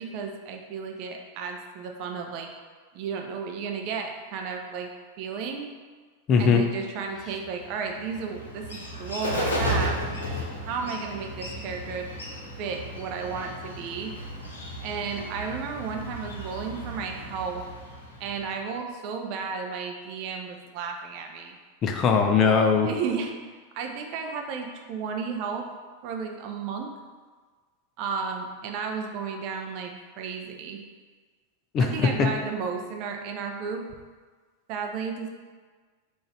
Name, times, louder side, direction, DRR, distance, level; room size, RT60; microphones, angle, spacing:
voice 1, 0.0-2.5 2.9-4.9 5.2-5.7 6.4-10.0 10.7-12.1 12.6-14.1 14.8-17.6 18.2-21.6 22.8-23.3 23.7-25.7 26.0-26.9 28.0-30.8 31.8-33.9 34.7-35.3, right 5 dB, 45° right, 3 dB, 0.5 m, -33 dB
voice 2, 6.3-6.6 21.8-22.9 31.7-32.3, left 5 dB, 30° left, 4 dB, 0.5 m, -20 dB
Bird, 7.1-18.6, equal, 70° left, 0.8 m, -34 dB
3.9 x 2.5 x 4.3 m, 1.5 s
figure-of-eight pair, 90°, 0 cm